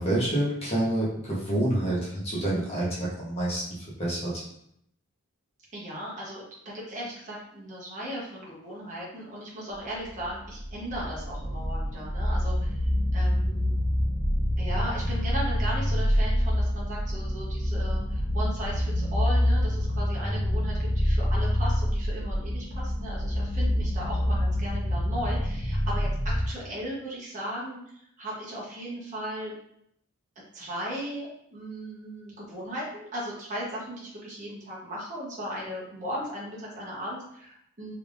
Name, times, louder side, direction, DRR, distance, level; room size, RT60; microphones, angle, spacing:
voice 1, 0.0-4.4, right 1 dB, 30° left, -7 dB, 1.0 m, -28 dB
voice 2, 5.7-6.4 6.7-13.7 14.6-27.8 28.2-29.5 30.5-38.0, equal, 35° right, -6 dB, 0.9 m, -37 dB
sound 1, 10.1-26.4, equal, 70° left, 1.3 m, -26 dB
3.4 x 3.4 x 2.5 m, 0.73 s
head